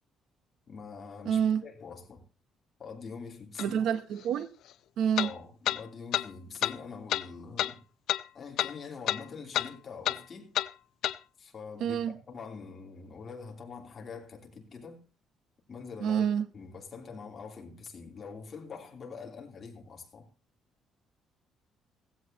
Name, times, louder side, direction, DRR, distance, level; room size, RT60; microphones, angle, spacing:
voice 1, 0.7-2.2 2.8-3.9 5.2-7.8 8.3-10.6 11.4-15.0 15.7-16.2 16.5-20.3, left 5 dB, 30° left, 3.1 m, -44 dB
voice 2, 1.2-1.6 3.6-4.5 5.0-5.3 11.8-12.1 16.0-16.4, right 8 dB, 60° right, 0.8 m, -27 dB
sound 1, 3.6-3.7 5.2-5.3 5.7-5.8 6.1-6.3 6.6-6.8 7.1-7.2 7.6-7.7 8.1-8.2 8.6-8.7 9.1-9.2 9.5-9.7 10.0-10.2 10.5-10.7 11.0-11.2, left 12 dB, 60° left, 0.6 m, -29 dB
16.5 x 16.0 x 2.9 m
cardioid pair, 180°, 0 cm